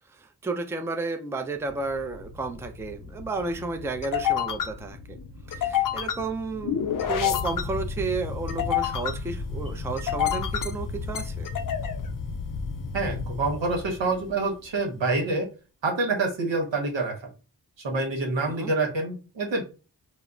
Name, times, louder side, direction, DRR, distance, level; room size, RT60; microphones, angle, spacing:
voice 1, 0.1-5.2 5.5-11.5 18.4-18.7, right 3 dB, 5° right, 0.4 m, -32 dB
sound 1, 1.7-14.4, left 8 dB, 50° left, 0.5 m, -30 dB
voice 2, 12.9-15.5 15.8-17.2 17.8-19.7, right 3 dB, 85° right, 0.9 m, -27 dB
2.1 x 2.1 x 3.6 m
cardioid pair, 40°, 43 cm